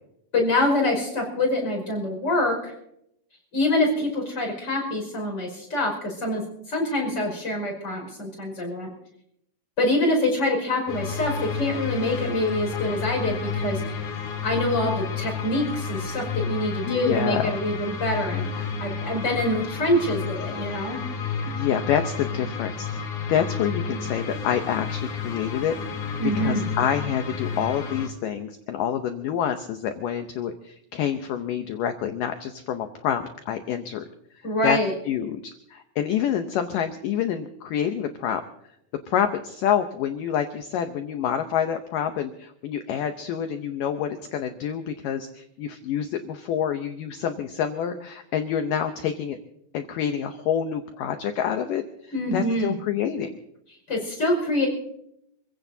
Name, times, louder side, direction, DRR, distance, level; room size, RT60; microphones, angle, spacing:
voice 1, 0.3-2.7 3.5-6.4 6.7-8.9 9.8-14.0 14.4-21.0 26.2-26.6 34.4-34.9 52.1-52.8 53.9-54.7, left 1 dB, 25° left, -1 dB, 5.7 m, -25 dB
sound 1, 10.9-28.1, left 5 dB, 55° left, 2.6 m, -31 dB
voice 2, 16.8-17.5 21.5-25.7 26.2-34.1 34.6-34.8 35.1-35.4 35.7-38.4 39.1-49.4 49.7-53.3, left 9 dB, 80° left, 6 dB, 2.0 m, -27 dB
27.0 x 16.0 x 2.7 m, 0.78 s
omnidirectional pair, 4.8 m